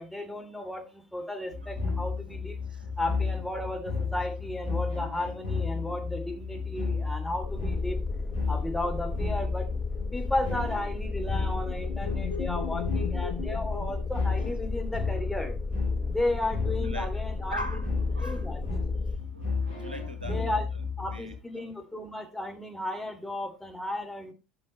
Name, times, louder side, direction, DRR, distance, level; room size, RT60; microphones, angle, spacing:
voice 1, 0.0-2.6 3.0-8.0 8.5-9.7 10.1-15.6 16.1-17.8 18.2-18.6 20.3-20.7 21.0-24.3, left 1 dB, 5° left, 3.1 m, -34 dB
sound 1, 1.5-21.4, left 4 dB, 80° left, 6.7 m, -33 dB
sound 2, 7.4-19.2, left 2 dB, 30° left, 0.7 m, -35 dB
sound 3, 10.8-14.9, left 9 dB, 60° left, 1.1 m, -39 dB
voice 2, 16.6-17.1 17.5-18.7 19.3-20.6 21.1-21.3, right 1 dB, 90° right, 1.3 m, -40 dB
15.0 x 6.1 x 3.0 m
figure-of-eight pair, 70°, 5 cm